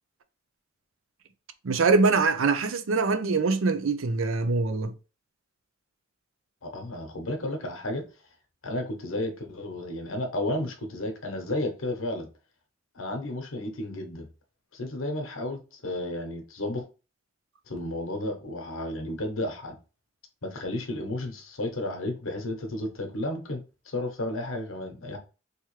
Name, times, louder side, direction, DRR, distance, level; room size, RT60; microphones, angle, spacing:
voice 1, 1.6-4.9, right 4 dB, 90° right, 0.6 m, -23 dB
voice 2, 6.6-8.0 8.6-12.3 12.9-14.3 14.7-16.8 17.7-19.8 20.4-23.6 23.9-25.2, left 1 dB, 90° left, 0.9 m, -32 dB
3.5 x 3.0 x 3.1 m
head